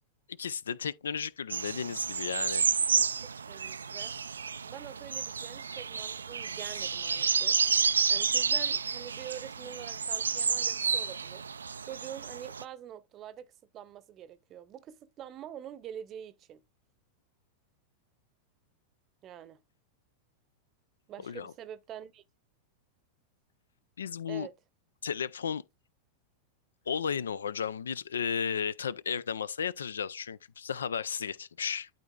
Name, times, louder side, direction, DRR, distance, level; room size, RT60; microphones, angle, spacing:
voice 1, 0.4-2.6 21.2-21.5 24.0-24.5 25.0-25.6 26.9-31.9, left 7 dB, 70° left, 0.4 m, -34 dB
sound 1, 1.5-12.6, right 6 dB, 70° right, 0.3 m, -30 dB
voice 2, 3.5-4.1 4.6-11.4 11.8-13.5 13.7-16.6 19.2-19.6 21.1-22.2 24.3-24.5, right 10 dB, 30° right, 0.7 m, -45 dB
12.0 x 4.1 x 2.3 m
figure-of-eight pair, 90°, 0 cm